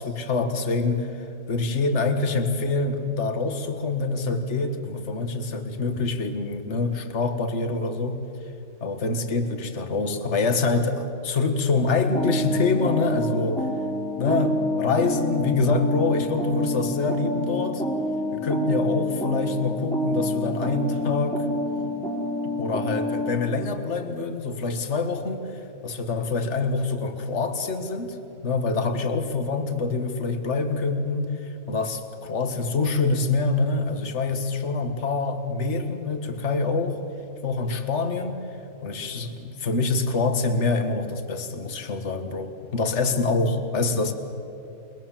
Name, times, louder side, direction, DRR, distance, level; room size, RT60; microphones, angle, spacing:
voice 1, 0.0-1.1 1.5-8.2 8.8-13.7 14.2-17.8 18.3-21.5 22.4-28.2 28.4-37.0 37.4-38.4 38.8-44.1, left 3 dB, 50° left, 6 dB, 1.9 m, -25 dB
sound 1, 12.1-23.4, left 1 dB, ahead, 3.7 m, -28 dB
29.5 x 21.5 x 7.4 m, 2.9 s
omnidirectional pair, 1.5 m